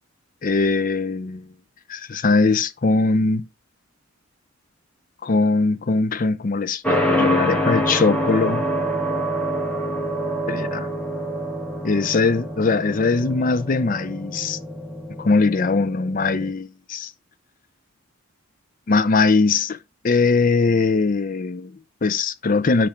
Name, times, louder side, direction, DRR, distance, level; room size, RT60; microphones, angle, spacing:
voice 1, 0.4-1.5 1.9-3.5 5.2-8.6 10.5-10.9 11.8-14.6 15.2-17.1 18.9-19.8 20.0-22.9, left 3 dB, 40° left, 0.5 m, -21 dB
sound 1, 6.8-16.5, equal, 5° left, 1.3 m, -26 dB
9.9 x 3.4 x 3.6 m
head